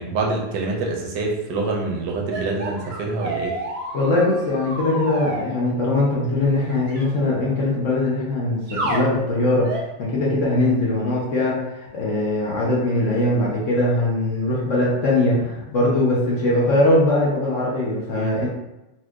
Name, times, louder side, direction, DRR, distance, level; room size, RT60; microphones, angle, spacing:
voice 1, 0.0-3.5 18.1-18.3, right 3 dB, 80° right, 0 dB, 1.2 m, -26 dB
sound 1, 2.3-5.4 6.7-7.0 8.7-9.1 9.6-9.9, right 2 dB, 50° right, 0.8 m, -29 dB
voice 2, 3.9-18.5, left 2 dB, 60° left, -5 dB, 0.9 m, -21 dB
4.4 x 2.3 x 2.3 m, 0.98 s
omnidirectional pair, 1.8 m